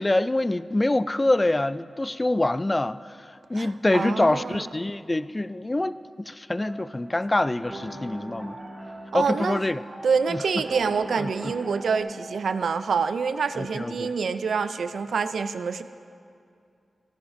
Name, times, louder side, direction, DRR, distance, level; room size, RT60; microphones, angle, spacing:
voice 1, 0.0-8.6 9.1-9.8 10.3-10.4 11.2-11.5 13.6-14.1, left 2 dB, 25° left, 15 dB, 0.3 m, -25 dB
voice 2, 3.5-4.7 9.1-9.6 10.0-15.8, right 5 dB, 85° right, 11 dB, 0.4 m, -26 dB
sound 1, 6.6-12.0, right 1 dB, 35° right, 2.8 m, -40 dB
16.5 x 14.5 x 2.6 m, 2.4 s
cardioid pair, 65°, 0 cm